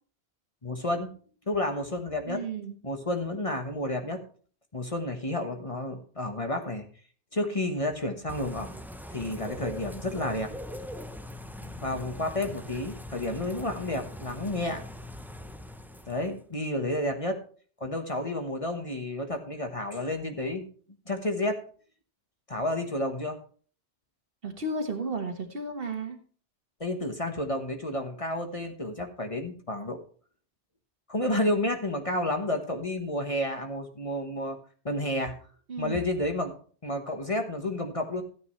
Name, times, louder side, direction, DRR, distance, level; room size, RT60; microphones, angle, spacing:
voice 1, 0.6-1.1 1.5-2.4 2.8-4.2 4.7-6.9 7.3-8.8 9.1-10.5 11.6-14.8 16.1-17.4 17.8-20.7 21.1-21.6 22.5-23.4 26.8-30.0 31.1-34.6 34.8-35.4 35.8-36.6 36.8-38.2, left 1 dB, 30° left, 5 dB, 1.3 m, -31 dB
voice 2, 2.3-2.8 24.4-26.2 35.7-36.0, right 3 dB, 55° right, 6 dB, 1.6 m, -33 dB
Bird / Rain, 8.3-16.4, left 1 dB, ahead, 0.5 m, -41 dB
14.0 x 9.3 x 3.2 m, 0.43 s
omnidirectional pair, 1.1 m